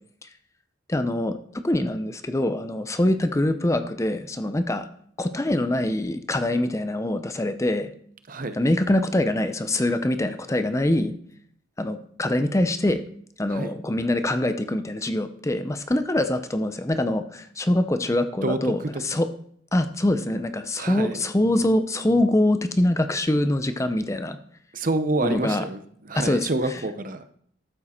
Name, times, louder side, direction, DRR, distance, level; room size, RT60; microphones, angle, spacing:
voice 1, 0.9-1.4 1.6-4.9 5.2-7.9 8.5-11.1 11.8-13.0 13.4-19.3 19.7-24.4 25.2-25.6 26.2-26.5, left 1 dB, 15° left, 9 dB, 0.5 m, -24 dB
voice 2, 18.4-19.0 20.8-21.2 24.7-27.3, right 2 dB, 45° right, 11 dB, 0.8 m, -28 dB
12.5 x 7.3 x 4.3 m, 0.63 s
head